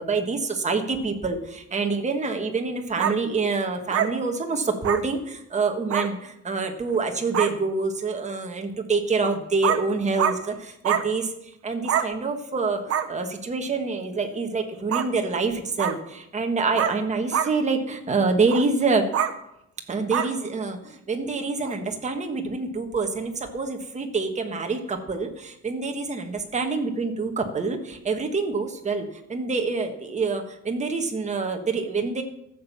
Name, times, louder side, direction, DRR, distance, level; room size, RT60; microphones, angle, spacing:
voice 1, 0.0-19.1 19.9-32.2, right 4 dB, 25° right, 4 dB, 1.5 m, -26 dB
sound 1, 3.0-3.1 3.9-4.1 4.8-5.0 5.9-6.1 6.9-7.0 7.3-7.5 9.2-9.3 9.6-9.8 10.2-10.4 10.8-11.0 11.8-12.1 12.9-13.1 14.9-15.1 15.8-16.0 16.8-17.0 17.3-17.5 18.5-18.6 19.1-19.3 20.1-20.3 21.6-21.7, right 9 dB, 50° right, 1.0 m, -24 dB
13.5 x 7.4 x 7.2 m, 0.81 s
cardioid pair, 165°, 29 cm